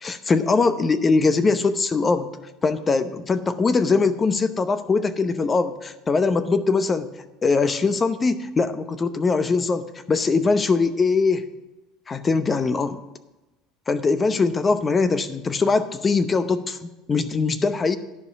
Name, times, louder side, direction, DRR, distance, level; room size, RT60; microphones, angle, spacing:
voice 1, 0.0-2.3 2.6-7.1 7.4-11.4 12.1-13.0 13.9-18.0, left 4 dB, 25° left, 11 dB, 0.8 m, -21 dB
11.0 x 5.0 x 6.9 m, 1.1 s
supercardioid pair, 90°, 0 cm